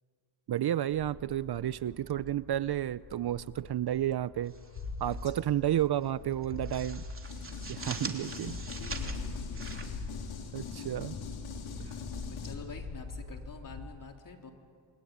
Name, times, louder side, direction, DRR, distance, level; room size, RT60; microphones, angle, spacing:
voice 1, 0.5-4.5 5.0-7.0 7.7-8.6 10.5-11.2, right 12 dB, 55° right, 17 dB, 0.7 m, -31 dB
sound 1, 0.9-13.8, left 4 dB, 70° left, 6.2 m, -43 dB
sound 2, 4.5-5.4 5.7-5.9 6.3-10.7, right 3 dB, 25° right, 3.0 m, -44 dB
voice 2, 5.1-6.2 7.9-10.1 11.7-14.5, left 4 dB, 40° left, 2 dB, 3.7 m, -49 dB
sound 3, 7.2-12.6, left 6 dB, 90° left, 3.8 m, -43 dB
28.5 x 22.5 x 9.5 m, 2.1 s
cardioid pair, 90°, 48 cm